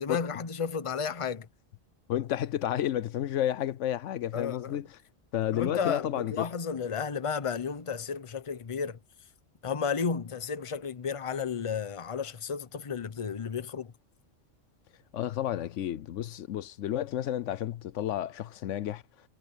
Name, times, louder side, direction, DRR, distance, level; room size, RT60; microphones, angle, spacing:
voice 1, 0.0-1.5 4.3-4.8 5.5-9.0 9.6-13.9, left 6 dB, 30° left, 0.8 m, -33 dB
voice 2, 2.1-5.0 5.3-6.5 15.1-19.0, left 11 dB, 85° left, 1.0 m, -31 dB
omnidirectional pair, 1.2 m